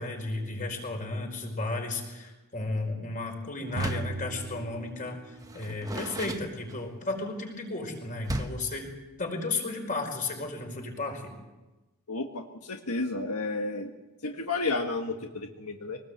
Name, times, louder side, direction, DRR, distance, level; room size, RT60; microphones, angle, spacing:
voice 1, 0.0-8.9 9.2-11.3, left 2 dB, 35° left, 3 dB, 5.0 m, -34 dB
Door, 3.7-4.2 5.4-7.1 8.2-8.7, right 1 dB, 15° right, 1.2 m, -36 dB
sound 1, 3.8-5.6, right 3 dB, 75° right, 1.2 m, -37 dB
voice 2, 12.1-13.9 14.2-16.0, left 3 dB, 85° left, 3 dB, 1.7 m, -32 dB
24.0 x 19.0 x 8.1 m, 1.1 s
head